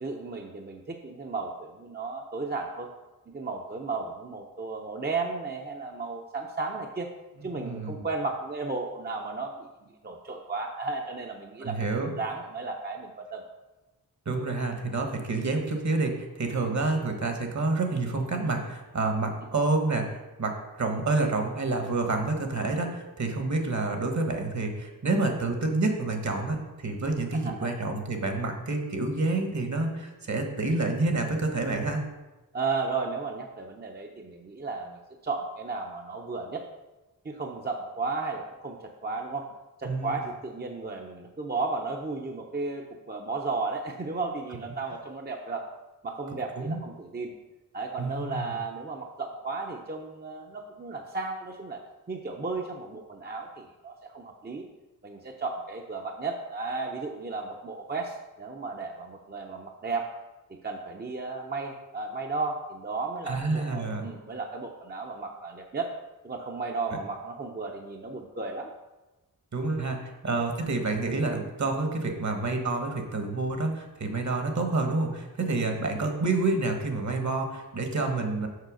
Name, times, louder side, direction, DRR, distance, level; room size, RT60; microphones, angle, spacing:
voice 1, 0.0-2.9 3.3-7.1 7.4-9.7 10.0-13.4 27.3-27.7 32.5-36.6 37.2-39.5 39.8-45.6 46.0-47.3 47.7-51.8 52.1-54.7 55.0-60.1 60.5-65.9 66.2-68.7, right 3 dB, 25° right, 1 dB, 0.7 m, -34 dB
voice 2, 7.4-8.0 11.6-12.1 14.2-32.0 39.8-40.1 46.6-46.8 48.0-48.5 63.3-64.0 69.5-78.5, right 3 dB, 50° right, 4 dB, 1.4 m, -28 dB
6.6 x 4.5 x 6.3 m, 1.1 s
cardioid pair, 70°, 37 cm